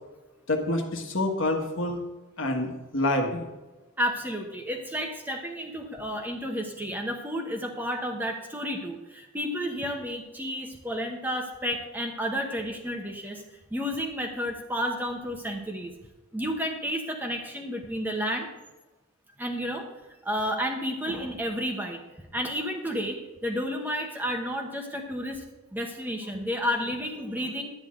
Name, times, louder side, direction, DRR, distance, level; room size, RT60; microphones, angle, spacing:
voice 1, 0.5-2.0 2.4-3.4, left 1 dB, 60° left, 3 dB, 1.5 m, -27 dB
voice 2, 4.0-13.4 13.7-15.9 16.3-18.5 19.4-19.9 20.2-22.0 22.3-25.4 25.7-27.7, equal, 10° right, 3 dB, 1.0 m, -31 dB
11.5 x 9.6 x 3.8 m, 1.1 s
head